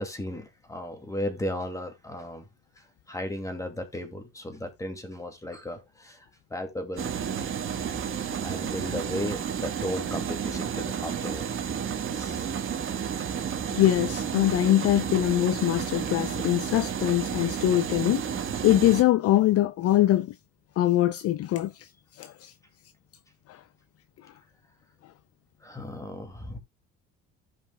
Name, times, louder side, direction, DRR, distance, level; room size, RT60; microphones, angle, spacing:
voice 1, 0.0-2.5 2.8-7.1 8.2-11.5 12.1-12.4 25.6-26.6, left 1 dB, 10° left, 2.3 m, -35 dB
sound 1, 6.9-19.0, right 8 dB, 40° right, 1.4 m, -31 dB
voice 2, 13.7-18.2 18.6-20.3 20.8-22.5 23.5-23.6, left 13 dB, 50° left, 0.5 m, -23 dB
15.0 x 5.3 x 2.2 m
cardioid pair, 120°, 31 cm